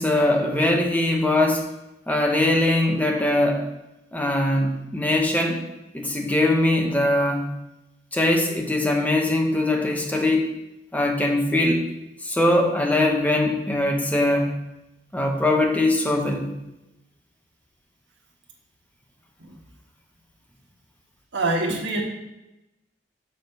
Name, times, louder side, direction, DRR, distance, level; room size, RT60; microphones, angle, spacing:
voice 1, 0.0-1.7 2.1-3.7 4.1-5.6 5.9-7.4 8.1-10.5 10.9-11.8 12.2-14.5 15.1-16.5, left 1 dB, 10° left, 2 dB, 0.9 m, -21 dB
voice 2, 21.3-22.0, right 2 dB, 85° right, 0 dB, 1.5 m, -25 dB
6.7 x 4.1 x 5.3 m, 0.94 s
head